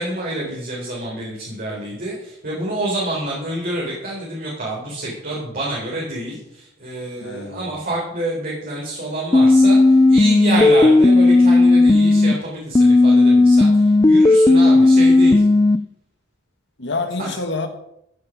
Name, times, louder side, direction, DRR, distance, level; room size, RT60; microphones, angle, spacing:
voice 1, 0.0-15.4 17.2-17.3, right 1 dB, 45° right, -5 dB, 4.0 m, -28 dB
voice 2, 7.2-7.8 16.8-17.7, left 3 dB, 60° left, 6 dB, 1.9 m, -27 dB
sound 1, 9.3-12.3 12.7-15.8, left 2 dB, 20° left, 0.4 m, -13 dB
14.5 x 9.8 x 5.2 m, 0.79 s
head